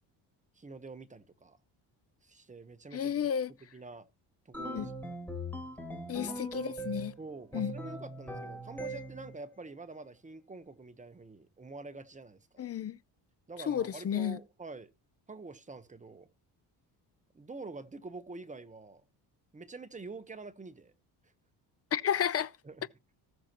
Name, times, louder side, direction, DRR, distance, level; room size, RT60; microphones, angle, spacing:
voice 1, 0.6-1.6 2.2-3.2 3.7-4.1 4.4-5.1 6.2-6.4 7.2-12.7 13.5-14.9 15.3-16.3 17.3-19.0 19.5-20.9 22.6-22.9, right 3 dB, 20° right, 1.1 m, -47 dB
voice 2, 2.9-3.5 4.6-4.9 6.1-7.1 7.5-7.7 12.6-13.0 13.7-14.4 21.9-22.5, left 9 dB, 35° left, 0.6 m, -32 dB
sound 1, 4.5-7.2 7.5-9.4, right 1 dB, 5° left, 3.2 m, -40 dB
19.5 x 6.7 x 3.0 m
cardioid pair, 110°, 42 cm